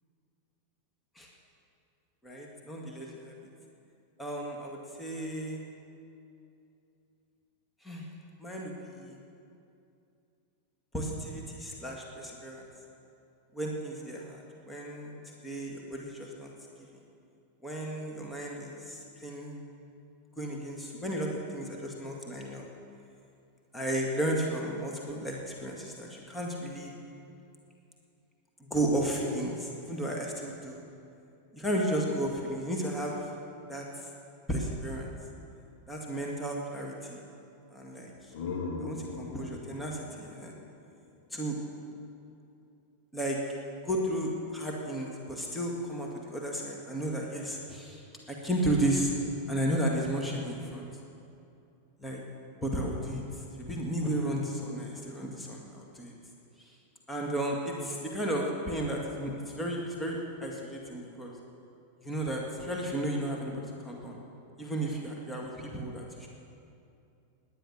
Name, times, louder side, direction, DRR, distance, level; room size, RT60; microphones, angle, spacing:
voice 1, 2.2-3.3 4.2-5.6 7.8-8.0 8.4-9.2 10.9-12.7 13.5-15.1 15.4-16.5 16.9-17.0 17.6-19.6 20.4-22.7 23.7-26.9 28.6-30.8 31.5-33.3 33.7-34.1 34.5-35.1 35.9-37.2 37.7-38.3 38.8-40.5 41.3-41.6 43.1-43.4 43.8-49.1 49.5-50.9 52.0-52.2 52.6-56.1 56.6-56.7 57.1-61.3 62.0-64.2 64.6-66.3, right 1 dB, 5° left, -2 dB, 2.1 m, -33 dB
sound 1, 38.0-41.7, left 4 dB, 50° left, 1.7 m, -40 dB
19.0 x 10.5 x 6.6 m, 2.6 s
figure-of-eight pair, 90°, 0 cm